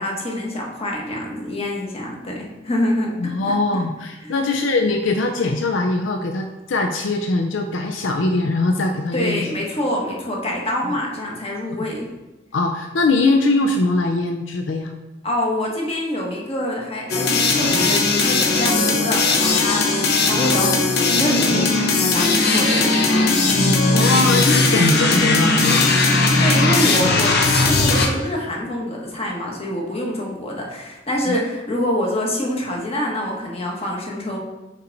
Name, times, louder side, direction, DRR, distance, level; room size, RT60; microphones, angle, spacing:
voice 1, 0.0-3.5 4.2-4.5 9.1-12.1 15.2-23.3 26.4-34.4, left 1 dB, 35° left, -1 dB, 1.3 m, -26 dB
voice 2, 3.2-9.5 10.8-10.9 12.5-14.9 23.9-25.9 31.3-31.4, left 2 dB, 90° left, 4 dB, 0.5 m, -21 dB
sound 1, 17.1-28.1, left 3 dB, 60° left, 0.8 m, -18 dB
5.6 x 4.6 x 3.9 m, 1.0 s
head